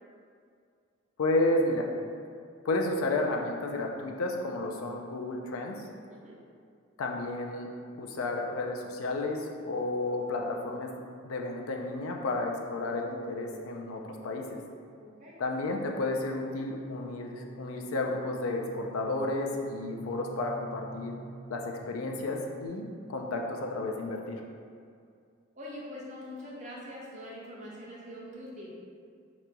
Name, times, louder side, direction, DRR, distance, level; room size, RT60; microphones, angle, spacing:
voice 1, 1.2-1.9 2.6-5.8 7.0-7.7 8.0-10.9 11.2-14.6 15.4-21.1 21.5-24.4, left 2 dB, 85° left, 1 dB, 0.4 m, -32 dB
voice 2, 15.0-15.4 25.5-28.7, left 1 dB, 35° right, -5 dB, 0.8 m, -43 dB
sound 1, 16.0-22.7, right 1 dB, 20° left, 0.5 m, -47 dB
5.0 x 3.0 x 2.2 m, 2.3 s
head